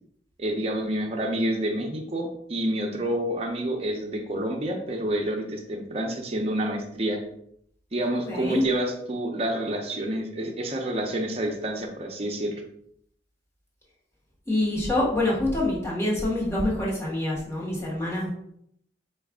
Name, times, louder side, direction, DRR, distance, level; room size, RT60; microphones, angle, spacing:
voice 1, 0.4-7.2 7.9-12.6, right 1 dB, 35° right, 1 dB, 0.6 m, -28 dB
voice 2, 8.3-8.6 14.5-18.3, left 1 dB, 15° left, -5 dB, 1.2 m, -26 dB
4.7 x 2.4 x 3.5 m, 0.70 s
head